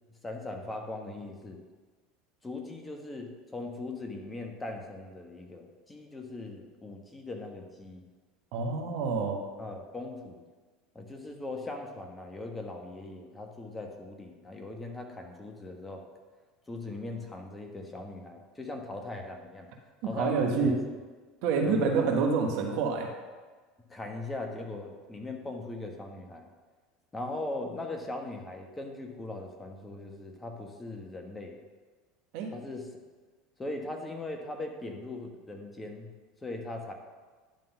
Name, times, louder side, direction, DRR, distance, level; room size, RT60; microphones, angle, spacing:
voice 1, 0.2-1.6 2.4-8.0 9.6-10.4 10.9-16.1 16.7-19.7 20.0-20.7 21.6-22.2 23.9-26.5 27.1-31.6 32.5-32.9 33.6-36.1 36.4-36.9, left 2 dB, 15° left, 3 dB, 1.3 m, -39 dB
voice 2, 8.5-9.4 20.1-20.7 21.4-23.1 32.3-32.5, right 4 dB, 65° right, 2 dB, 1.3 m, -27 dB
10.5 x 3.8 x 5.7 m, 1.4 s
hypercardioid pair, 85°, 0 cm